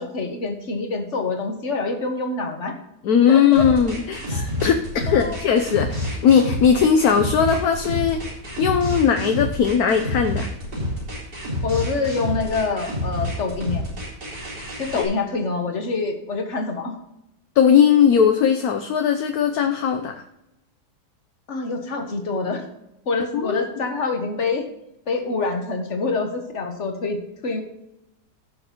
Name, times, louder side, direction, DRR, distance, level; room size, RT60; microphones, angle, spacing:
voice 1, 0.0-2.8 3.3-3.7 4.3-4.5 5.1-5.5 11.6-13.9 14.8-17.0 21.5-22.7 23.1-24.7 25.1-27.2 27.4-27.6, left 3 dB, 45° left, 4 dB, 1.7 m, -26 dB
voice 2, 3.0-8.2 8.6-10.5 14.9-15.0 17.6-20.2 23.3-23.6, left 7 dB, 65° left, 5 dB, 1.2 m, -18 dB
sound 1, 3.5-15.1, left 1 dB, 80° right, 4.4 m, -28 dB
16.0 x 6.4 x 3.0 m, 0.87 s
omnidirectional pair, 1.8 m